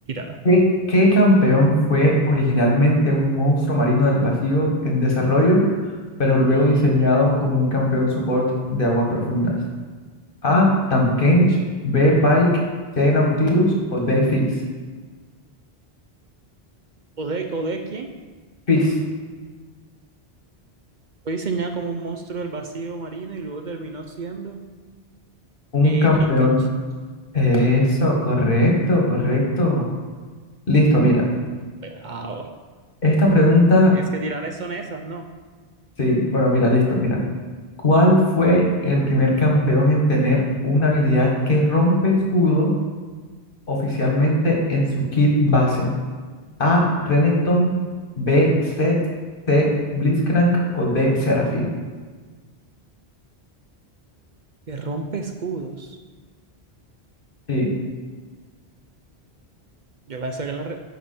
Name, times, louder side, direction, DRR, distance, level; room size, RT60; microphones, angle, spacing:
voice 1, 0.1-0.4 17.2-18.1 21.2-24.6 25.8-26.5 31.8-32.5 33.9-35.3 54.7-56.0 60.1-60.8, right 3 dB, 55° right, 5 dB, 0.7 m, -30 dB
voice 2, 0.9-5.6 6.2-9.6 10.4-11.6 11.8-12.5 12.9-14.4 18.7-18.9 25.7-26.6 27.3-29.9 30.7-31.2 33.0-33.9 36.0-37.2 37.8-42.7 43.7-45.9 46.6-47.7 48.2-49.0 49.5-51.7 57.5-57.7, left 1 dB, 60° left, -1 dB, 1.7 m, -18 dB
10.0 x 5.1 x 4.3 m, 1.4 s
omnidirectional pair, 1.0 m